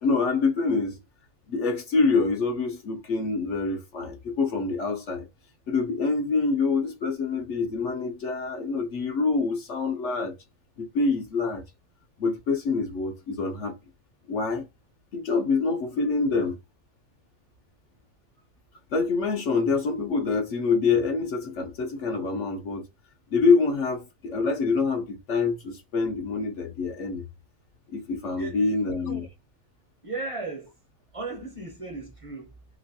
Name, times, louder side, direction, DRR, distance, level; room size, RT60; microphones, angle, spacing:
voice 1, 0.0-1.0 1.5-5.3 5.7-10.3 10.8-11.6 12.2-13.8 14.3-14.7 15.1-16.6 18.9-22.9 23.3-27.2 27.9-29.2, left 4 dB, 60° left, 0.9 m, -26 dB
voice 2, 30.0-30.7 31.1-32.5, right 3 dB, 25° right, 0.8 m, -35 dB
3.0 x 2.9 x 2.8 m
omnidirectional pair, 1.6 m